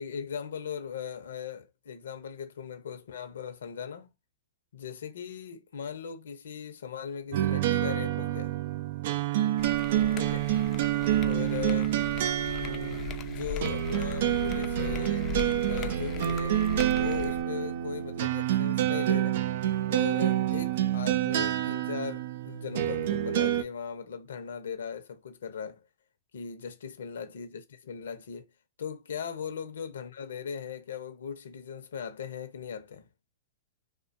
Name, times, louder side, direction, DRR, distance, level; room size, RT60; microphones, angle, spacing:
voice 1, 0.0-4.1 4.7-8.6 10.1-10.5 11.2-12.0 12.6-15.3 15.7-16.6 16.9-19.4 19.9-25.8 26.3-28.5 28.8-33.1, left 7 dB, 75° left, 0.7 m, -38 dB
sound 1, 7.3-23.6, right 12 dB, 60° right, 0.3 m, -28 dB
sound 2, 9.6-17.4, left 6 dB, 30° left, 0.4 m, -39 dB
2.4 x 2.2 x 2.6 m
hypercardioid pair, 120°, 0 cm